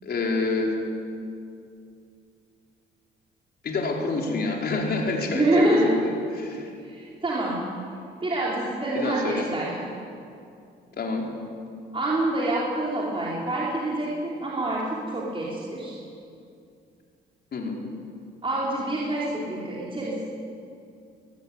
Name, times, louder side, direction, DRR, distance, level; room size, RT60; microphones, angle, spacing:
voice 1, 0.0-0.8 3.6-6.7 8.9-9.5 11.0-11.3 17.5-17.8, left 3 dB, 55° left, 0 dB, 4.8 m, -27 dB
voice 2, 5.3-5.9 6.8-7.6 8.2-9.7 11.9-15.9 18.4-20.3, right 2 dB, 25° right, -5 dB, 4.7 m, -26 dB
23.0 x 17.0 x 10.0 m, 2.4 s
cardioid pair, 90°, 20 cm